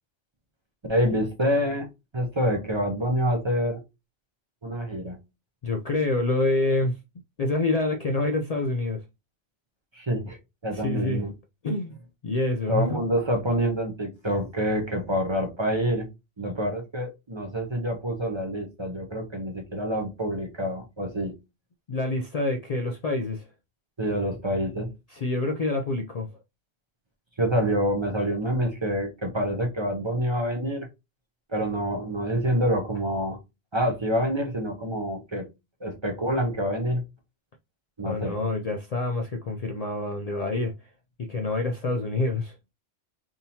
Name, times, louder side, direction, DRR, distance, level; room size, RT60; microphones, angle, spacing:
voice 1, 0.9-1.9 2.1-3.8 4.6-5.2 9.9-10.4 10.6-11.3 12.7-16.1 16.4-21.3 24.0-24.9 27.4-30.9 31.5-33.4 33.7-35.5 35.8-37.0 38.0-38.4, equal, 30° right, 0.5 m, -27 dB
voice 2, 5.6-7.0 7.4-9.0 10.7-11.3 11.6-12.0 12.2-13.0 21.9-23.4 25.1-26.3 38.0-40.7 41.2-42.5, left 2 dB, 85° left, 0.3 m, -27 dB
3.6 x 2.8 x 2.7 m
omnidirectional pair, 1.2 m